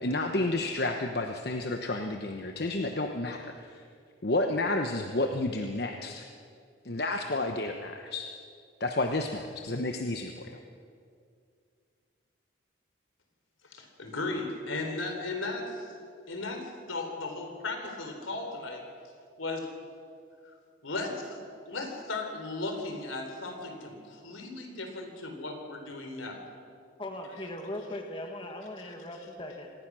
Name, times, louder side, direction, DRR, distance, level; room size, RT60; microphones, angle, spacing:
voice 1, 0.0-3.7 4.2-6.3 6.8-8.3 8.8-10.6, left 2 dB, 55° left, 4 dB, 1.1 m, -31 dB
voice 2, 13.7-15.9 16.3-18.9 19.4-19.7 20.8-21.4 21.6-26.4, left 2 dB, 90° left, 4 dB, 3.8 m, -36 dB
voice 3, 27.0-29.7, left 1 dB, 25° left, 3 dB, 1.7 m, -39 dB
25.5 x 19.5 x 6.3 m, 2.3 s
head